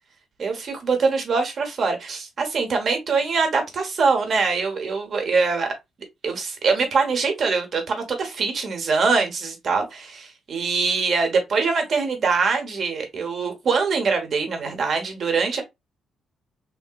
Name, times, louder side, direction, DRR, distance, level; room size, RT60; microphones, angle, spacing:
voice 1, 0.4-5.7 6.2-15.6, right 4 dB, 50° right, 1.1 m, -23 dB
3.1 x 2.8 x 2.3 m
cardioid pair, 90°, 0 cm